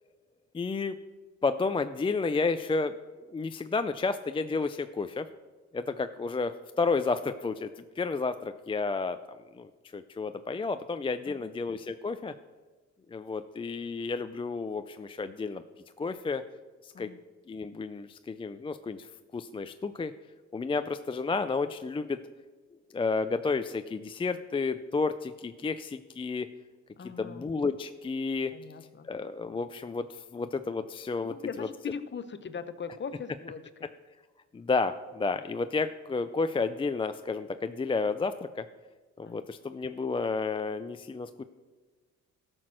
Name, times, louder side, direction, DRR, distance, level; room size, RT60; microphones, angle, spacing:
voice 1, 0.5-1.0 1.4-5.3 5.7-12.3 13.1-15.6 16.0-16.4 16.8-17.1 17.5-20.1 20.5-22.2 22.9-26.5 27.2-28.5 29.0-31.7 34.5-38.7 39.2-41.4, left 4 dB, 20° left, 9 dB, 0.4 m, -31 dB
voice 2, 27.0-27.5 28.5-29.1 31.2-33.9 39.3-39.4, left 6 dB, 35° left, 12 dB, 0.8 m, -40 dB
13.5 x 6.1 x 6.3 m, 1.3 s
cardioid pair, 90°, 30 cm